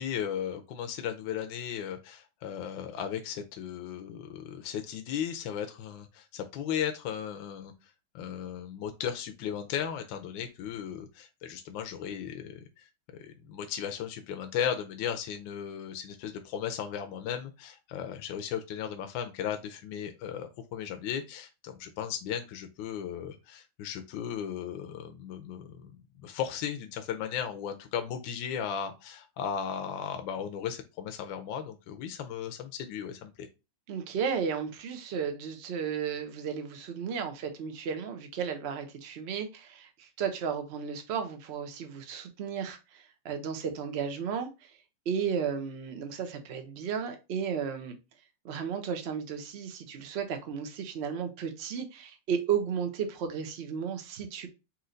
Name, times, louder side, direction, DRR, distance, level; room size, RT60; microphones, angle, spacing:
voice 1, 0.0-7.7 8.1-33.5, left 8 dB, 75° left, 6 dB, 1.3 m, -36 dB
voice 2, 33.9-44.7 45.1-48.0 48.4-54.5, right 7 dB, 55° right, 6 dB, 0.7 m, -34 dB
4.4 x 2.7 x 3.8 m, 0.27 s
omnidirectional pair, 2.1 m